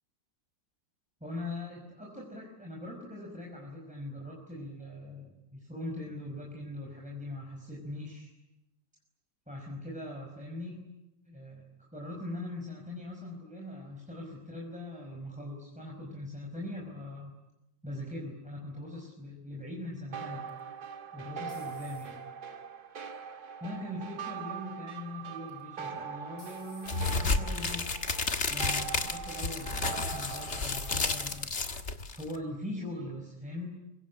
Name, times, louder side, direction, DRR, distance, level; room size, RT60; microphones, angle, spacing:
voice 1, 1.2-8.3 9.5-10.8 11.3-17.3 17.8-20.5 21.1-22.2 23.6-27.9 28.5-31.5 32.1-33.7, left 1 dB, 5° right, 0 dB, 5.3 m, -41 dB
sound 1, 20.1-31.4, right 6 dB, 65° right, 2.1 m, -42 dB
sound 2, 20.5-22.4 23.0-23.5 25.5-25.9 26.4-27.0 27.8-28.0 28.5-28.6 30.5-30.9 31.2-31.8, left 1 dB, 70° left, 6.9 m, -56 dB
sound 3, 26.9-32.4, left 3 dB, 40° left, 1.9 m, -31 dB
25.5 x 23.5 x 9.8 m, 0.92 s
omnidirectional pair, 1.9 m